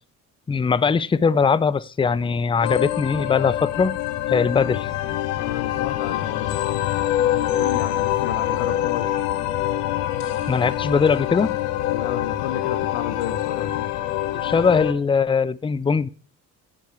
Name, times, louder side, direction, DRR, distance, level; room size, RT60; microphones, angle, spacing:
voice 1, 0.5-3.9 4.3-4.9 10.5-11.5 14.3-16.1, left 5 dB, 10° left, 0.4 m, -20 dB
sound 1, 2.6-14.9, left 13 dB, 85° left, 0.8 m, -25 dB
voice 2, 5.3-6.6 7.3-9.2 11.9-13.9, left 10 dB, 55° left, 1.1 m, -31 dB
10.5 x 8.4 x 4.6 m
hypercardioid pair, 45°, 47 cm